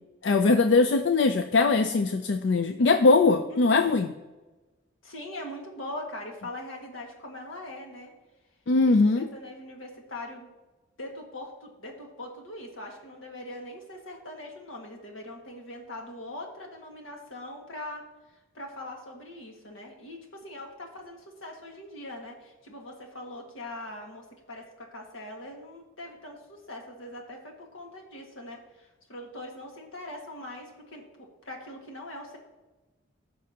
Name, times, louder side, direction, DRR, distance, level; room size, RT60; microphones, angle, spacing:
voice 1, 0.2-4.1 8.7-9.3, left 3 dB, 65° left, 8 dB, 0.4 m, -21 dB
voice 2, 3.5-3.9 5.0-8.1 9.2-10.5 11.0-18.0 18.5-32.4, left 1 dB, 85° left, 1 dB, 1.8 m, -42 dB
14.5 x 5.5 x 2.8 m, 1.1 s
head